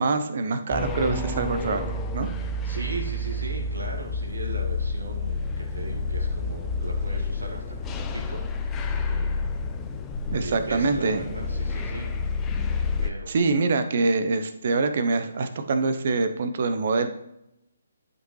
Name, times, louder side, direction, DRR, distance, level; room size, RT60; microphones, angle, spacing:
voice 1, 0.0-1.8 2.1-2.3 10.3-11.2 13.3-17.1, right 3 dB, 50° right, 9 dB, 0.8 m, -24 dB
sound 1, 0.7-13.1, left 3 dB, 15° left, 0.6 m, -29 dB
voice 2, 2.6-8.4 8.7-9.4 10.3-12.1 13.0-13.4, right 2 dB, 75° right, 1 dB, 2.1 m, -38 dB
11.5 x 5.4 x 3.2 m, 0.84 s
figure-of-eight pair, 140°, 0 cm